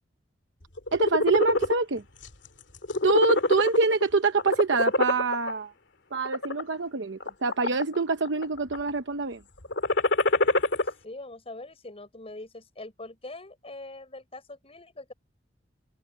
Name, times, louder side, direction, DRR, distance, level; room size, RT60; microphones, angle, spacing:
sound 1, 0.8-1.8 2.2-2.5 2.8-4.0 4.4-5.5 6.1-6.6 7.2-8.0 8.2-8.8 9.6-10.9, left 2 dB, 80° left, 2.3 m, -24 dB
voice 1, 0.9-2.0 3.0-5.7 6.1-9.4, right 3 dB, 80° right, 0.9 m, -25 dB
voice 2, 11.0-15.1, left 2 dB, 35° left, 6.0 m, -42 dB
open air
head